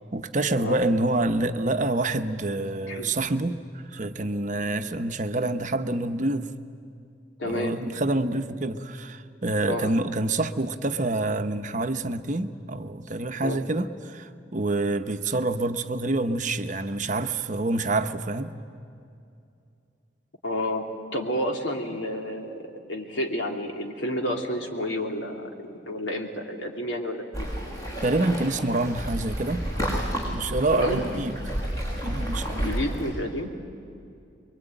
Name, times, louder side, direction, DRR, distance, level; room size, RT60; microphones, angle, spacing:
voice 1, 0.1-3.6 3.9-6.5 7.4-18.5 28.0-29.6 30.3-31.4 32.0-32.8, right 2 dB, 45° right, 9 dB, 0.9 m, -27 dB
voice 2, 7.4-7.7 9.6-9.9 13.4-13.6 20.4-27.5 30.7-31.0 32.6-33.5, left 1 dB, 90° left, 2 dB, 2.9 m, -30 dB
Waves surf, 27.3-33.1, equal, 20° left, 6.3 m, -31 dB
24.0 x 23.0 x 9.0 m, 2.5 s
head